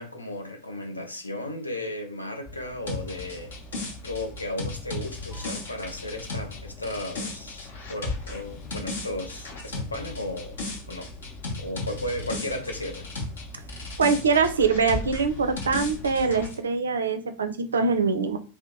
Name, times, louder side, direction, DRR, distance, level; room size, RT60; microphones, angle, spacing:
voice 1, 0.0-3.5 4.0-10.6 10.9-11.1 11.6-13.0, left 1 dB, 80° left, 4 dB, 0.6 m, -35 dB
Motor vehicle (road), 2.5-16.5, left 3 dB, 20° left, 0.7 m, -43 dB
sound 1, 2.9-13.4 13.7-16.5, left 2 dB, 65° left, 0.9 m, -35 dB
voice 2, 14.0-18.4, right 5 dB, 70° right, 9 dB, 0.4 m, -23 dB
2.8 x 2.1 x 3.6 m, 0.37 s
figure-of-eight pair, 90°, 0 cm